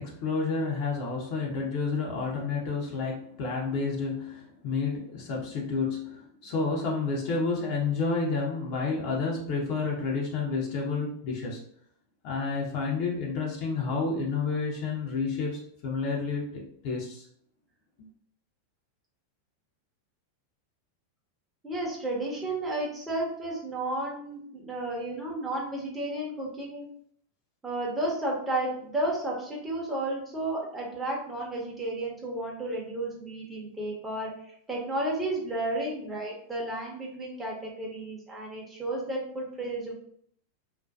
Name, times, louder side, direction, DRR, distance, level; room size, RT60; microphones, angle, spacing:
voice 1, 0.0-11.6 12.2-17.2, left 4 dB, 55° left, -3 dB, 0.6 m, -30 dB
voice 2, 21.6-26.9 27.6-34.3 34.7-40.0, right 1 dB, 15° right, -3 dB, 0.8 m, -32 dB
2.5 x 2.2 x 2.3 m, 0.65 s
hypercardioid pair, 95°, 0 cm